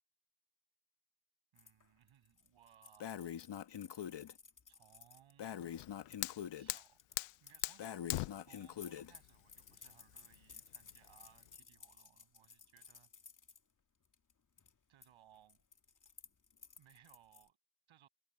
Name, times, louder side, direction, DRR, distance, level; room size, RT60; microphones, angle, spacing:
voice 1, 1.5-3.3 4.7-5.6 6.5-7.0 7.4-8.0 8.4-13.1 14.9-15.6 16.8-17.6 17.9-18.1, right 11 dB, 70° right, 7.3 m, -66 dB
sound 1, 1.6-6.2 6.7-13.6 14.1-14.3 14.6-15.1 15.3-17.5, left 5 dB, 40° left, 2.5 m, -59 dB
Breathing, 3.0-4.3 5.4-6.7 7.8-9.1, left 9 dB, 55° left, 1.8 m, -44 dB
Fire, 5.6-11.6, left 21 dB, 80° left, 1.0 m, -44 dB
open air
hypercardioid pair, 45°, 49 cm